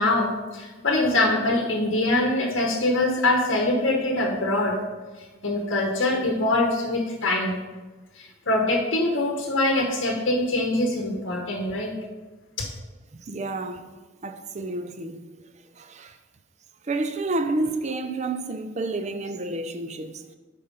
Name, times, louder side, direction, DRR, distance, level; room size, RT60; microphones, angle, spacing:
voice 1, 0.0-4.8 5.4-7.6 8.2-11.9 12.6-12.7, left 2 dB, 60° left, 1.0 m, -23 dB
voice 2, 13.2-13.9 14.2-15.2 15.7-16.2 16.8-20.3, right 2 dB, 35° right, 0.5 m, -30 dB
9.1 x 4.2 x 5.2 m
head